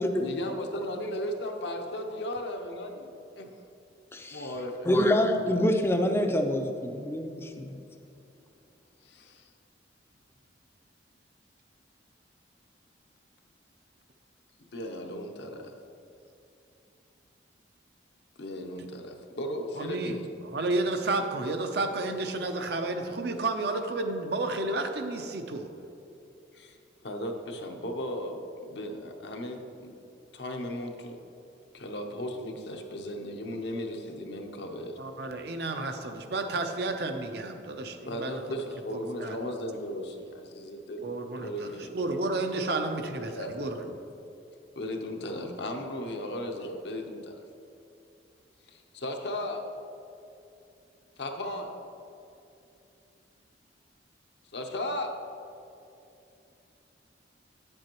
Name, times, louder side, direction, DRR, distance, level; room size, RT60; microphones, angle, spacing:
voice 1, 0.1-3.1 3.4-3.5 4.3-4.9 9.0-9.5 14.7-15.7 18.4-20.3 26.5-26.8 27.0-30.0 30.3-31.2 31.7-35.0 38.1-41.1 41.4-41.9 43.3-43.9 44.8-47.4 48.7-49.7 51.2-51.8 54.5-55.1, left 1 dB, 65° left, 3 dB, 0.7 m, -36 dB
voice 2, 4.1-4.4 4.9-7.8, left 1 dB, 15° left, 4 dB, 0.4 m, -26 dB
voice 3, 19.8-20.2 20.5-25.7 35.0-38.4 39.2-39.4 41.0-43.9, right 2 dB, 55° right, 6 dB, 0.6 m, -31 dB
9.2 x 7.7 x 3.0 m, 2.7 s
head